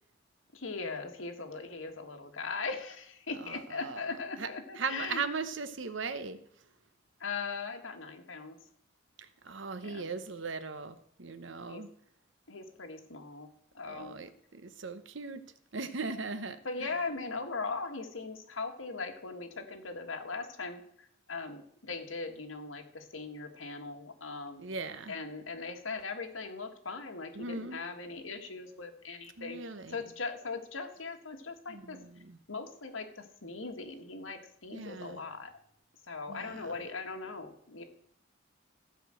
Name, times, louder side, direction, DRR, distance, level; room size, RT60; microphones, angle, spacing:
voice 1, 0.5-5.2 7.2-8.6 9.8-10.0 11.7-11.8 12.5-13.5 13.7-14.2 16.6-24.7 25.1-29.6 29.9-32.0 32.5-35.5 36.1-37.8, left 4 dB, 85° left, 4 dB, 1.8 m, -39 dB
voice 2, 3.4-4.5 4.8-6.4 9.2-11.9 13.8-15.4 15.7-16.6 24.6-25.1 27.3-27.8 29.4-30.0 31.7-32.4 34.7-35.2 36.3-36.7, right 4 dB, 70° right, 12 dB, 1.0 m, -39 dB
15.0 x 5.1 x 7.7 m, 0.67 s
head